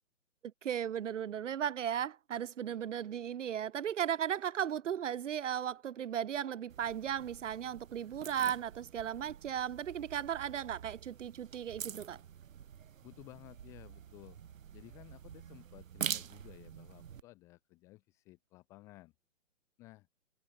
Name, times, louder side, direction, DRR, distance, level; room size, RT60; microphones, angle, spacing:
voice 1, 0.6-12.2, right 9 dB, 70° right, 0.9 m, -36 dB
sound 1, 6.7-17.2, right 8 dB, 90° right, 0.9 m, -46 dB
voice 2, 13.0-14.4 14.7-19.1 19.8-20.1, left 19 dB, 10° left, 0.7 m, -55 dB
hypercardioid pair, 160°, 39 cm